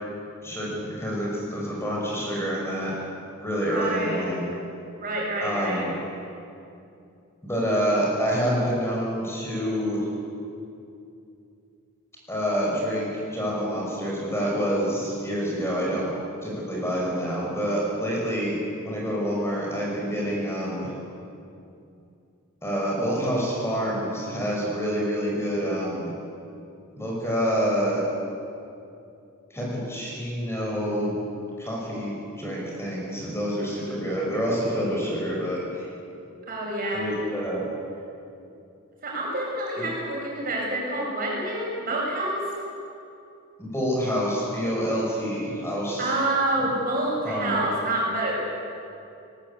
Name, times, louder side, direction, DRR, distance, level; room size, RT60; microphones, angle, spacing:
voice 1, 0.4-2.9 3.4-4.5 5.4-5.9 7.4-10.1 12.3-16.1 16.4-18.5 18.8-20.9 22.6-26.1 26.9-28.0 29.5-31.1 31.6-35.9 36.9-37.6 39.8-39.9 43.6-46.1 47.2-47.6, equal, 10° left, -4 dB, 5.7 m, -27 dB
voice 2, 3.7-4.3 5.0-5.9 36.5-37.1 39.0-42.4 46.0-48.4, right 1 dB, 40° right, -3 dB, 7.5 m, -27 dB
23.5 x 20.0 x 8.5 m, 2.6 s
head